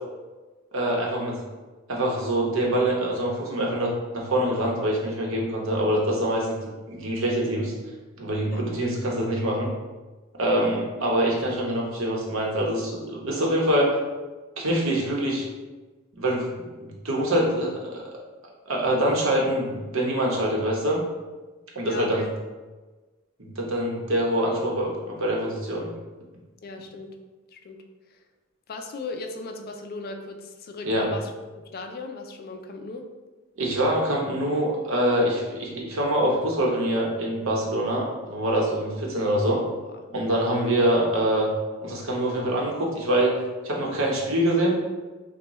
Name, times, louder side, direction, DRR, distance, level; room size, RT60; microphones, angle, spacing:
voice 1, 0.7-1.4 1.9-6.6 6.9-7.7 8.2-9.7 10.4-13.9 14.6-15.4 16.2-18.0 18.7-21.0 21.7-22.2 23.4-25.9 30.8-31.1 33.6-39.6 40.1-41.5 41.8-43.3 43.6-44.8, right 1 dB, 70° right, -2 dB, 1.0 m, -25 dB
voice 2, 10.5-10.8 21.8-22.3 26.6-27.1 27.5-27.8 28.1-28.2 28.7-31.3 31.7-33.0 39.8-40.0, left 3 dB, 50° left, 4 dB, 0.4 m, -37 dB
6.1 x 2.2 x 3.0 m, 1.2 s
head